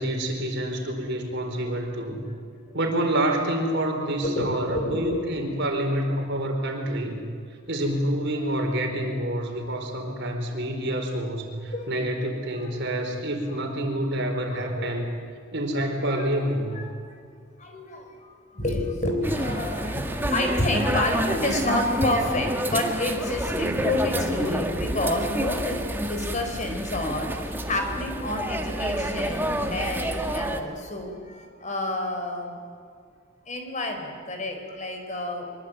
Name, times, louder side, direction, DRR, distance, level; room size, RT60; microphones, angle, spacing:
voice 1, 0.0-2.2 2.7-7.2 7.7-15.1 15.5-16.8, right 1 dB, 60° right, 3 dB, 4.6 m, -27 dB
voice 2, 4.2-5.3 9.9-10.8 11.7-11.9 12.5-13.6 14.5-15.1 15.8-15.9 16.2-16.9 17.6-32.6 32.9-33.0 33.5-35.6, left 1 dB, 35° left, 4 dB, 4.3 m, -30 dB
sound 1, 19.2-30.6, right 1 dB, 10° right, 1.8 m, -28 dB
24.0 x 23.0 x 8.8 m, 2.1 s
head